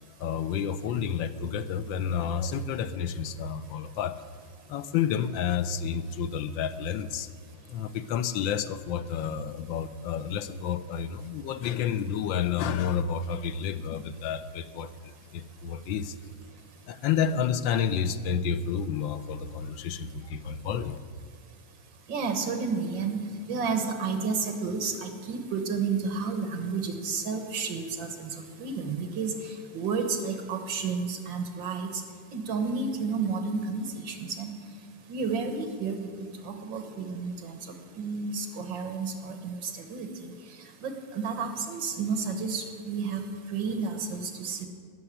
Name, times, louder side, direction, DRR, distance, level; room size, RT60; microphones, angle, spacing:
voice 1, 0.2-4.2 4.7-7.3 7.7-16.2 16.9-21.0, left 7 dB, 80° left, 12 dB, 1.5 m, -30 dB
voice 2, 22.1-23.2 23.5-28.3 28.6-32.0 32.3-34.5 35.1-37.6 38.0-40.3 40.8-43.2 43.5-44.7, right 5 dB, 75° right, 6 dB, 2.1 m, -31 dB
17.5 x 6.9 x 9.9 m, 2.1 s
omnidirectional pair, 2.0 m